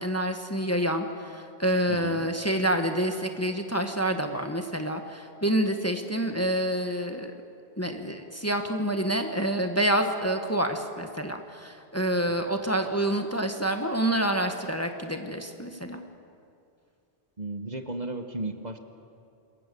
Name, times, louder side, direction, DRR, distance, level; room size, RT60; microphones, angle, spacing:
voice 1, 0.0-7.3 7.8-16.0, right 1 dB, 15° left, 5 dB, 1.4 m, -27 dB
voice 2, 1.9-2.2 17.4-18.8, right 2 dB, 40° right, 6 dB, 1.3 m, -34 dB
27.5 x 22.0 x 6.9 m, 2.5 s
omnidirectional pair, 1.1 m